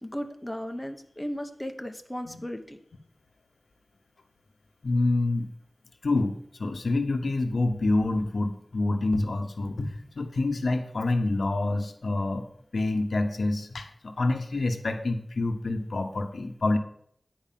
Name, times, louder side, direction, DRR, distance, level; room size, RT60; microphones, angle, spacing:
voice 1, 0.0-2.8, equal, 10° left, 5 dB, 1.0 m, -36 dB
voice 2, 4.8-5.5 6.0-12.4 12.7-16.8, left 2 dB, 90° left, 6 dB, 1.0 m, -27 dB
10.5 x 4.8 x 7.5 m, 0.66 s
wide cardioid pair, 70°, 0 cm